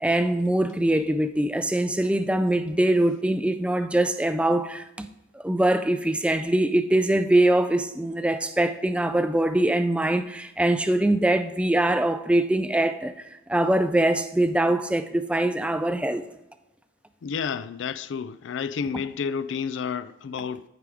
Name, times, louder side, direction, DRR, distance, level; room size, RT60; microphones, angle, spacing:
voice 1, 0.0-5.1 5.3-13.1 13.5-16.2, right 1 dB, 5° right, 0.3 m, -23 dB
voice 2, 17.2-20.6, left 6 dB, 75° left, 0.4 m, -30 dB
13.5 x 4.9 x 3.5 m
head